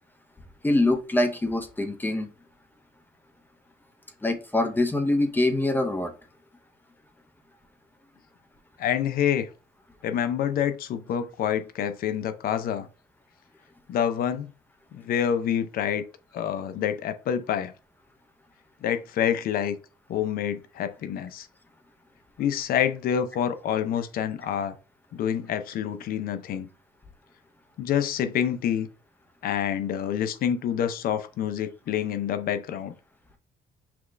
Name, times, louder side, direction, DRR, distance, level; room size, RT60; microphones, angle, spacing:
voice 1, 0.6-2.3 4.2-6.1, left 2 dB, 10° left, 0.7 m, -24 dB
voice 2, 8.8-9.5 10.0-12.9 13.9-14.5 14.9-16.1 16.3-17.7 18.8-19.8 20.1-21.5 22.4-24.8 25.1-26.7 27.8-28.9 29.4-32.9, left 9 dB, 60° left, 0.6 m, -27 dB
5.9 x 2.4 x 3.2 m
cardioid pair, 110°, 17 cm